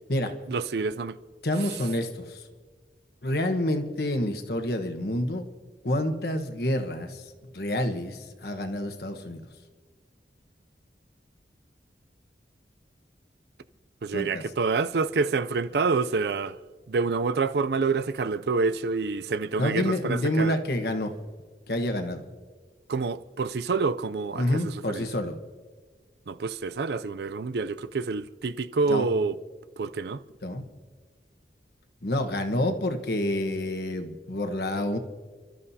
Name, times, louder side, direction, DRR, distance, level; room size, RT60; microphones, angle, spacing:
voice 1, 0.5-1.2 14.0-16.6 16.9-20.6 22.9-25.1 26.3-29.4 29.8-30.2, right 4 dB, 65° right, 0.5 m, -27 dB
voice 2, 1.4-2.5 3.2-5.4 5.8-9.4 14.1-14.4 19.6-21.1 21.7-22.3 24.3-25.3 28.9-29.1 30.4-30.7 32.0-35.0, left 1 dB, 60° left, 1.3 m, -28 dB
29.5 x 13.0 x 2.8 m
head